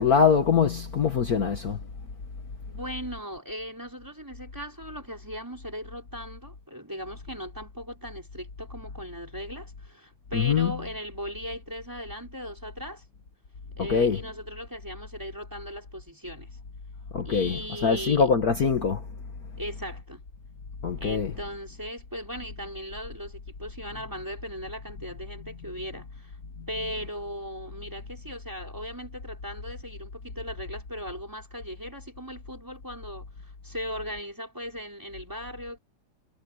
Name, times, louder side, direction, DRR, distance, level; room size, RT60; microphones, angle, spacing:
voice 1, 0.0-1.8 10.3-10.7 13.8-14.2 17.1-19.0 20.8-21.4, left 6 dB, 55° left, 1.0 m, -23 dB
voice 2, 2.7-13.0 13.8-16.5 17.2-18.3 19.6-20.2 21.0-26.4 26.7-35.8, equal, 5° right, 5.2 m, -38 dB
omnidirectional pair, 4.0 m